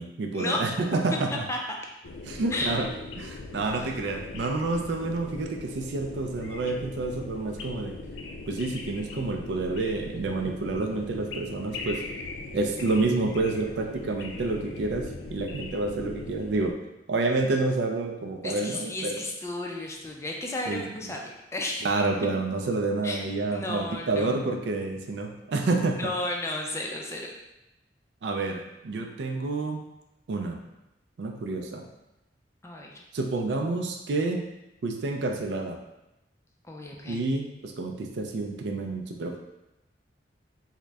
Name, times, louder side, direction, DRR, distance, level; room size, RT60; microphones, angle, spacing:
voice 1, 0.0-1.4 2.2-2.9 3.2-8.0 8.5-12.0 12.5-16.7 17.1-19.2 20.7-20.8 21.8-26.1 28.2-29.8 30.3-30.6 31.2-31.8 33.1-34.4 34.8-35.8 37.0-39.4, right 3 dB, 65° right, 3 dB, 0.4 m, -29 dB
sound 1, 2.0-16.7, left 3 dB, 85° left, 0.4 m, -40 dB
voice 2, 2.5-3.0 3.7-3.9 18.4-21.2 21.5-21.9 23.0-23.2 23.5-24.3 25.9-27.3 32.6-33.0 36.7-37.2, left 2 dB, 15° left, 0 dB, 0.4 m, -33 dB
3.6 x 2.1 x 3.3 m, 0.93 s
head